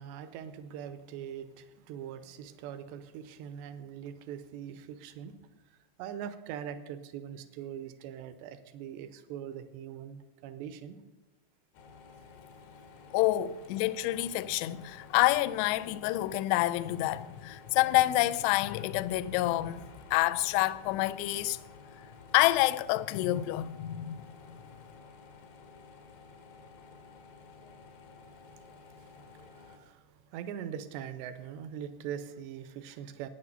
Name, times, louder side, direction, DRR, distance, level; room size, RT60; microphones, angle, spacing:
voice 1, 0.0-5.3 6.0-11.0 29.0-29.1 29.5-30.0 30.3-33.3, right 9 dB, 80° right, 2.7 m, -42 dB
sound 1, 11.7-29.8, left 4 dB, 65° left, 2.3 m, -53 dB
voice 2, 13.1-19.8 20.1-21.6 22.3-24.6, left 16 dB, 85° left, 2.5 m, -28 dB
11.0 x 9.0 x 6.7 m
omnidirectional pair, 5.3 m